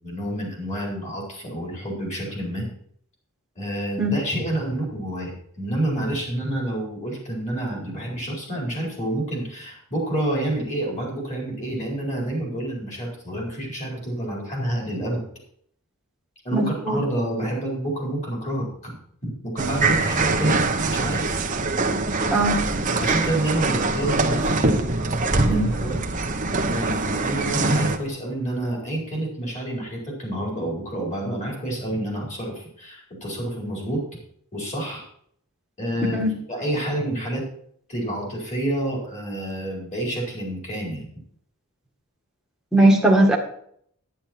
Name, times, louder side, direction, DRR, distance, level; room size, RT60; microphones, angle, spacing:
voice 1, 0.0-2.7 3.6-15.2 16.4-19.0 19.2-21.4 23.0-24.7 25.5-26.0 26.7-34.0 34.5-35.0 35.8-36.2 36.5-37.5 37.9-41.1, right 1 dB, 35° left, -1 dB, 4.3 m, -28 dB
voice 2, 16.5-17.0 22.3-22.6 25.4-25.7 36.2-36.3 42.7-43.4, right 1 dB, 5° right, -1 dB, 1.7 m, -19 dB
sound 1, 19.6-28.0, right 3 dB, 35° right, 0.9 m, -23 dB
10.0 x 9.8 x 4.4 m, 0.65 s
head